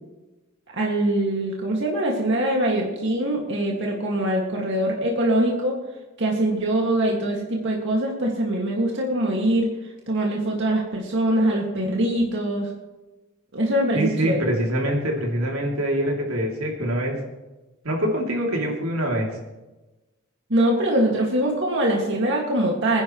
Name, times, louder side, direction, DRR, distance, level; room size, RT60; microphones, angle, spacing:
voice 1, 0.7-5.8 6.2-9.7 10.1-12.7 13.5-14.4 20.5-23.0, right 1 dB, 60° right, -1 dB, 2.1 m, -23 dB
voice 2, 13.9-17.2 17.8-19.3, right 1 dB, 90° right, -1 dB, 3.0 m, -24 dB
25.0 x 10.5 x 3.2 m, 1.1 s
head